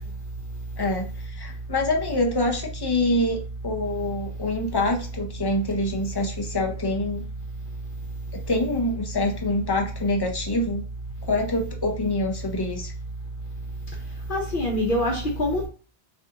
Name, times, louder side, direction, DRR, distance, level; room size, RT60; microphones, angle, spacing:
voice 1, 0.8-7.2 8.5-10.8 11.3-12.9, left 1 dB, 40° left, 0.3 m, -26 dB
voice 2, 14.3-15.7, left 1 dB, 60° left, 0.8 m, -24 dB
3.2 x 2.4 x 2.8 m
omnidirectional pair, 1.1 m